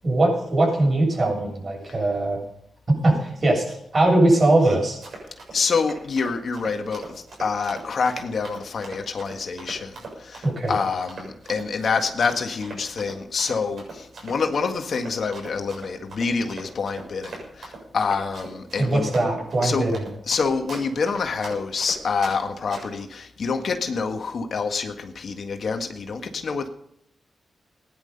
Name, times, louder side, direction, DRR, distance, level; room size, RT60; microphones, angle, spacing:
voice 1, 0.0-2.4 2.9-5.0 10.4-10.8 18.8-20.1, right 2 dB, 45° right, 0 dB, 8.0 m, -21 dB
Run, 4.8-22.4 22.7-23.0, right 3 dB, 70° right, 7.0 m, -39 dB
voice 2, 5.5-10.4 10.7-19.1 19.6-19.9 20.3-26.7, left 5 dB, 65° left, 5 dB, 1.8 m, -27 dB
17.0 x 11.0 x 5.5 m, 0.72 s
cardioid pair, 55°, 0 cm